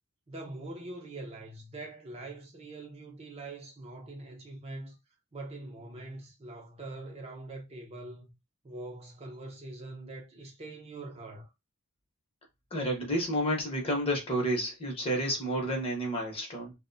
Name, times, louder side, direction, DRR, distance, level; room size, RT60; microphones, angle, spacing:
voice 1, 0.3-5.0 5.3-8.4 8.6-11.5, right 2 dB, 25° right, 0.5 m, -43 dB
voice 2, 12.7-16.7, equal, 25° left, 0.7 m, -30 dB
2.5 x 2.1 x 2.5 m
head